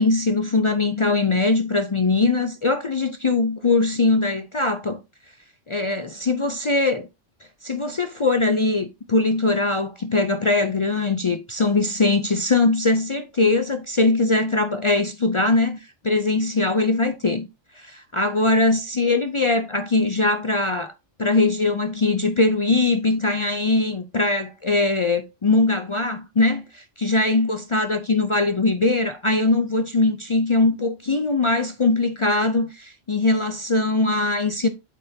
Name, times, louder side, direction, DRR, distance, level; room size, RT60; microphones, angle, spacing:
voice 1, 0.0-5.0 5.7-7.1 7.6-17.5 17.8-20.9 21.2-34.7, left 3 dB, 50° left, 0.3 m, -21 dB
8.4 x 5.7 x 2.7 m
omnidirectional pair, 1.3 m